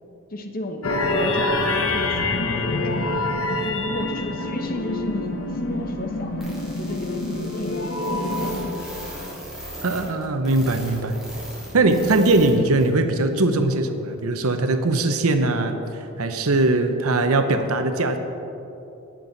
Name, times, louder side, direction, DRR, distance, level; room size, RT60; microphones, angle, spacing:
voice 1, 0.3-3.0 3.6-7.2 7.6-9.0, left 1 dB, 40° left, 4 dB, 0.9 m, -33 dB
sound 1, 0.8-8.7, left 2 dB, 70° left, 1.0 m, -26 dB
sound 2, 6.4-12.5 12.8-12.9 13.4-13.5, equal, ahead, 2.8 m, -38 dB
voice 2, 9.8-11.2 11.7-15.8 16.2-18.2, right 2 dB, 80° right, 7 dB, 0.8 m, -20 dB
20.0 x 7.6 x 4.0 m, 3.0 s
head